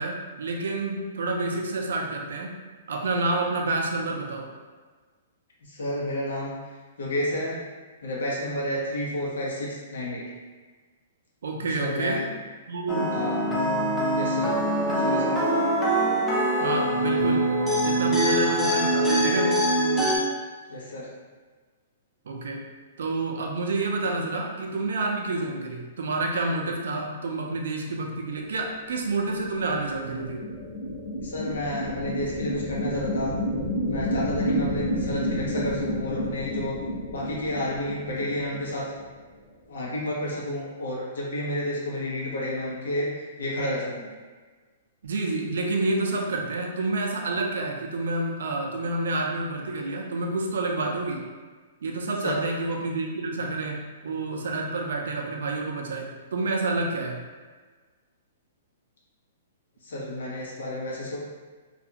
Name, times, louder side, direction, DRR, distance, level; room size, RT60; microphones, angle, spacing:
voice 1, 0.0-2.6 2.9-4.5 11.4-12.2 12.7-13.1 16.6-17.5 17.8-19.6 22.3-22.6 23.0-30.4 45.0-51.2 51.8-57.2, right 2 dB, 80° right, 1 dB, 0.5 m, -29 dB
voice 2, 5.6-7.6 8.0-10.3 11.7-12.3 13.1-13.5 14.2-14.5 14.9-15.4 20.7-21.1 31.2-33.4 33.9-36.8 37.1-38.9 39.7-44.1 52.2-52.4 59.8-61.2, left 1 dB, 85° left, -4 dB, 0.8 m, -31 dB
sound 1, 12.9-20.2, right 1 dB, 5° left, 0.4 m, -23 dB
sound 2, 29.3-39.0, equal, 60° left, 1.1 m, -30 dB
2.4 x 2.3 x 2.8 m, 1.4 s
hypercardioid pair, 160°, 0 cm